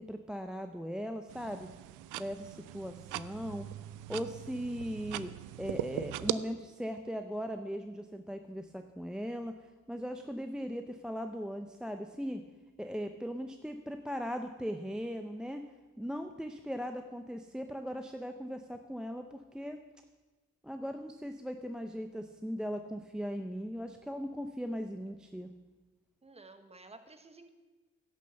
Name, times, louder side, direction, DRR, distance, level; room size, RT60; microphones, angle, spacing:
voice 1, 0.0-1.7 2.2-3.7 4.1-5.3 5.6-9.6 9.9-12.4 12.8-15.6 16.0-19.8 20.6-25.5, equal, 5° right, 7 dB, 0.5 m, -38 dB
sound 1, 1.3-6.3, right 15 dB, 85° right, 0.5 m, -40 dB
voice 2, 26.2-27.5, right 3 dB, 20° right, 8 dB, 1.1 m, -53 dB
10.5 x 6.9 x 6.8 m, 1.2 s
cardioid pair, 90°, 30 cm